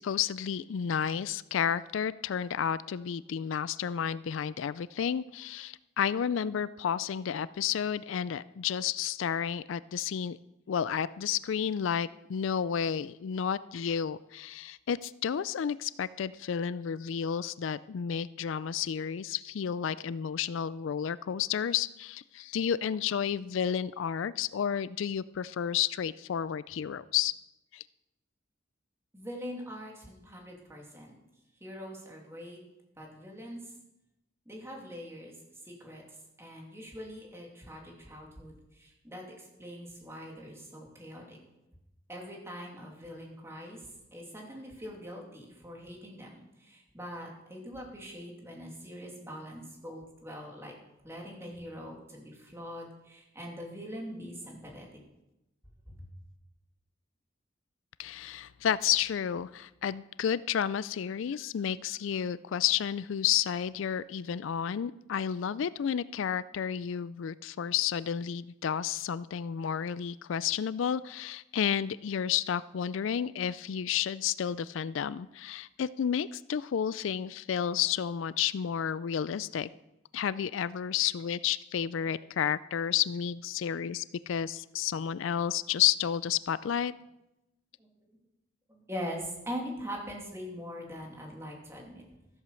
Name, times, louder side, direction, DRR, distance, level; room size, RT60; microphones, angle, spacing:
voice 1, 0.0-10.4 10.7-27.3 27.7-27.8 58.0-79.7 80.1-86.9, left 8 dB, 75° left, 18 dB, 0.4 m, -31 dB
voice 2, 29.1-31.2 31.6-32.6 33.0-33.7 34.5-41.4 42.1-50.7 51.0-54.9 55.9-56.1 87.8-88.2 88.7-92.0, equal, 15° right, -1 dB, 2.7 m, -43 dB
14.5 x 8.1 x 6.9 m, 0.92 s
head